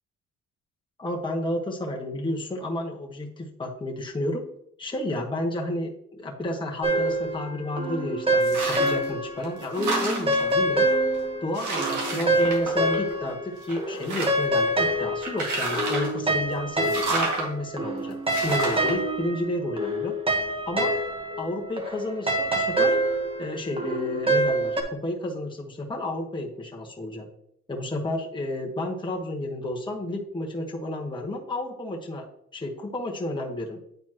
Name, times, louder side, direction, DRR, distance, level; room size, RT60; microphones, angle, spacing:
voice 1, 1.0-4.4 4.8-10.8 11.4-20.1 20.7-21.0 21.4-23.0 23.4-27.3 27.7-32.2 32.5-33.8, left 1 dB, 15° left, 0 dB, 1.2 m, -31 dB
sound 1, 6.8-9.4 9.8-13.5 13.8-24.8, right 1 dB, 20° right, 1.1 m, -26 dB
sound 2, 8.4-9.1 9.4-10.5 11.1-11.2 11.5-13.3 13.6-14.6 15.2-16.2 16.8-17.5 18.3-18.9, right 3 dB, 75° right, 2.1 m, -30 dB
9.0 x 4.3 x 2.9 m, 0.70 s
cardioid pair, 90°, 30 cm